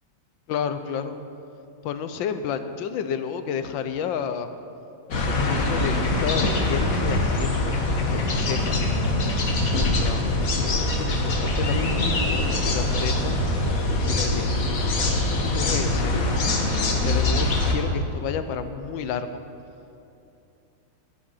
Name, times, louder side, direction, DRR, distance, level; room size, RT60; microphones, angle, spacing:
voice 1, 0.5-1.2 1.8-4.5 5.1-8.8 9.6-13.4 13.9-15.2 15.5-16.3 17.0-19.4, left 7 dB, 80° left, 10 dB, 1.5 m, -31 dB
sound 1, 5.1-17.7, left 2 dB, 45° left, 1.7 m, -23 dB
13.0 x 13.0 x 5.6 m, 2.7 s
omnidirectional pair, 2.1 m